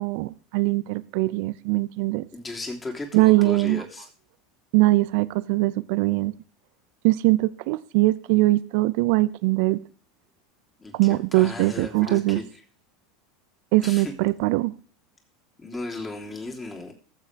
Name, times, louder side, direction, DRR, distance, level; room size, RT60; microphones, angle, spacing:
voice 1, 0.0-2.3 3.1-3.8 4.7-6.4 7.0-9.8 10.9-12.4 13.7-14.7, right 20 dB, 65° right, 17 dB, 0.5 m, -21 dB
voice 2, 2.3-4.1 10.8-10.9 11.3-12.4 13.8-14.1 15.6-16.9, left 2 dB, 20° left, 1 dB, 3.3 m, -35 dB
20.0 x 7.5 x 3.4 m, 0.38 s
hypercardioid pair, 85°, 0 cm